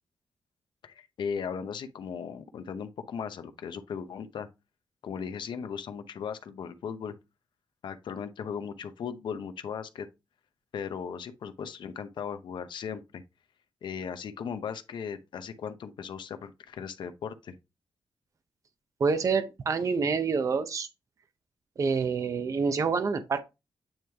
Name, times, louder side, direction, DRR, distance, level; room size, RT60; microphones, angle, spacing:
voice 1, 0.8-4.5 5.0-7.1 7.8-10.1 10.7-13.0 13.8-17.5, left 7 dB, 75° left, 0.8 m, -37 dB
voice 2, 19.0-20.9 21.8-23.4, right 5 dB, 40° right, 0.6 m, -27 dB
8.8 x 3.1 x 3.4 m
wide cardioid pair, 140°, 8 cm